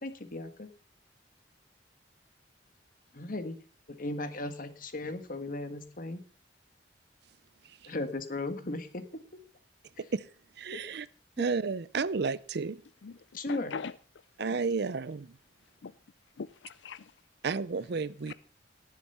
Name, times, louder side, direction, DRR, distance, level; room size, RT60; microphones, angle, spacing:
voice 1, 0.0-0.7 3.1-3.5 4.0-6.2 7.9-9.0 10.7-10.8 13.3-13.7, left 2 dB, 50° left, 1.6 m, -36 dB
voice 2, 10.0-10.3 10.6-11.1 11.4-12.8 14.4-15.3 17.4-18.3, right 4 dB, 65° right, 0.5 m, -32 dB
voice 3, 13.5-13.9 14.5-14.6 15.8-15.9 16.4-17.1 18.3-18.4, left 5 dB, 75° left, 0.5 m, -40 dB
18.5 x 7.4 x 5.6 m
head